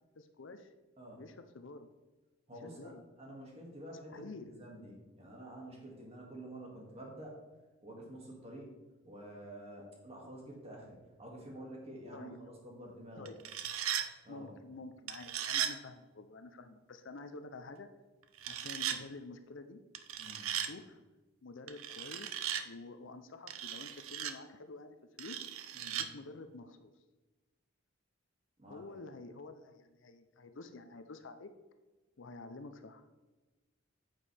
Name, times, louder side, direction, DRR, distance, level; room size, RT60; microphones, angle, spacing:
voice 1, 0.1-0.7 1.2-1.9 2.6-3.0 4.1-4.7 12.1-12.5 13.2-13.4 14.3-17.9 18.5-19.8 20.6-21.0 21.4-25.5 25.9-26.9 28.7-31.5 32.2-33.1, left 3 dB, 60° left, 8 dB, 0.6 m, -49 dB
voice 2, 2.5-7.4 7.8-8.8 9.0-13.3 14.2-14.5 20.2-20.5 25.7-26.0 28.6-29.0, right 1 dB, 30° right, -2 dB, 2.1 m, -49 dB
sound 1, 13.3-14.1 15.1-15.7 18.4-19.0 19.9-20.7 21.7-22.6 23.5-24.3 25.2-26.1, right 10 dB, 80° right, 0.6 m, -37 dB
9.2 x 7.5 x 3.4 m, 1.2 s
head